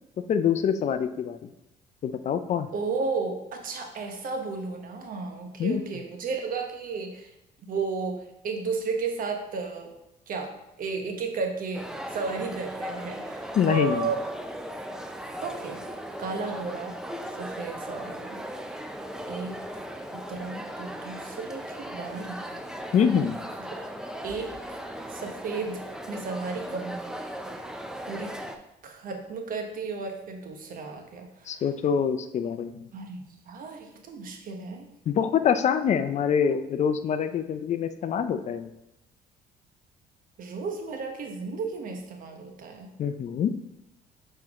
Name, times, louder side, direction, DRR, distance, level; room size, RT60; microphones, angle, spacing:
voice 1, 0.3-1.5 2.0-2.7 5.6-5.8 13.5-14.1 22.9-23.4 31.5-32.9 35.1-38.7 43.0-43.5, left 7 dB, 45° left, 10 dB, 0.5 m, -25 dB
voice 2, 2.7-7.3 7.7-9.9 10.3-10.5 10.8-14.3 15.4-15.8 16.2-16.9 17.4-18.4 19.3-19.6 20.1-22.5 24.2-24.5 25.1-27.0 28.1-28.3 28.8-31.6 32.9-34.9 40.4-42.9, right 4 dB, 55° right, 3 dB, 1.2 m, -33 dB
sound 1, 11.7-28.6, equal, 5° right, 0.6 m, -38 dB
6.9 x 4.4 x 3.6 m, 0.89 s
cardioid pair, 110°, 17 cm